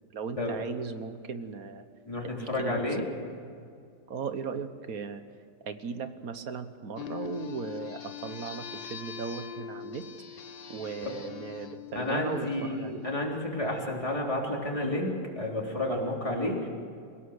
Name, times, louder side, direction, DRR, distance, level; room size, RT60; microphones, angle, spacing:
voice 1, 0.1-1.9 2.2-2.8 4.1-5.2 5.7-10.1 10.7-13.0 14.8-15.0, right 5 dB, 65° right, 10 dB, 1.6 m, -37 dB
voice 2, 2.1-3.1 11.9-16.7, left 1 dB, 20° left, -1 dB, 3.7 m, -31 dB
sound 1, 7.0-13.0, left 9 dB, 45° left, 1.0 m, -42 dB
28.0 x 17.0 x 6.5 m, 2.4 s
omnidirectional pair, 1.6 m